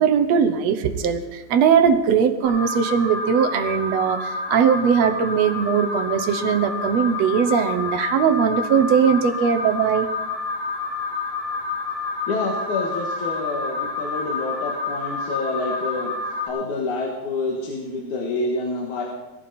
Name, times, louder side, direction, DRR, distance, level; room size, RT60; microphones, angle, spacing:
voice 1, 0.0-10.1, right 7 dB, 65° right, 9 dB, 2.0 m, -20 dB
Alarm, 2.4-16.5, left 3 dB, 45° left, 7.5 m, -29 dB
voice 2, 12.3-16.1 16.4-19.0, left 2 dB, 75° left, -2 dB, 3.3 m, -27 dB
20.5 x 15.0 x 4.4 m, 1.1 s
omnidirectional pair, 3.4 m